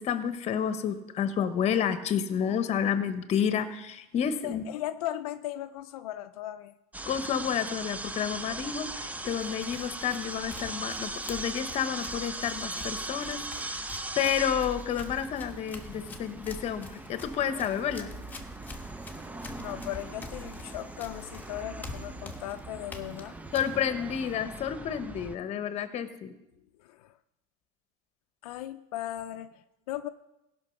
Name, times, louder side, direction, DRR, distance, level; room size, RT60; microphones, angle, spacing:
voice 1, 0.0-4.6 7.1-13.8 14.2-18.1 23.5-26.3, left 8 dB, 35° left, 11 dB, 1.1 m, -30 dB
voice 2, 4.4-6.7 19.6-23.4 26.8-27.1 28.4-30.1, left 13 dB, 85° left, 8 dB, 0.5 m, -37 dB
sound 1, 6.9-25.4, right 2 dB, 10° right, 0.6 m, -40 dB
Run, 9.2-24.4, left 3 dB, 10° left, 1.3 m, -47 dB
16.0 x 5.9 x 5.9 m, 0.92 s
supercardioid pair, 125°, 19 cm